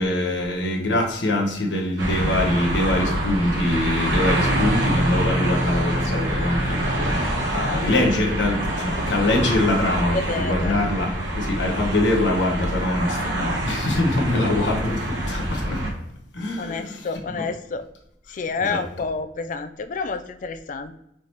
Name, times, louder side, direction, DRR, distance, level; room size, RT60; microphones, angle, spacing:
voice 1, 0.0-15.8 16.3-17.4 18.7-18.8, left 1 dB, 75° left, 2 dB, 1.0 m, -24 dB
sound 1, 2.0-15.9, right 1 dB, 90° right, 1.2 m, -25 dB
voice 2, 10.1-10.8 16.6-17.8 18.3-21.0, left 4 dB, 45° left, 10 dB, 0.3 m, -29 dB
4.7 x 3.3 x 2.9 m, 0.81 s
head